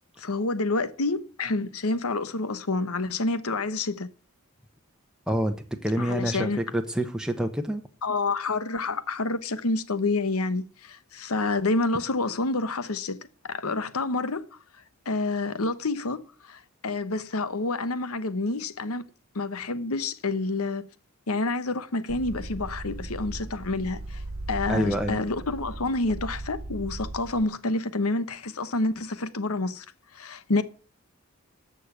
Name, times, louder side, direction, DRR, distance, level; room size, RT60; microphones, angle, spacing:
voice 1, 0.2-4.1 6.0-6.6 8.0-14.5 15.0-19.0 19.3-20.9 21.3-24.2 24.5-29.8 30.1-30.6, left 3 dB, 85° left, 1.1 m, -28 dB
voice 2, 5.3-5.6 5.8-7.8 24.7-25.2, equal, 5° right, 1.0 m, -27 dB
sound 1, 22.1-27.4, right 2 dB, 65° right, 1.0 m, -37 dB
14.0 x 6.6 x 9.0 m
head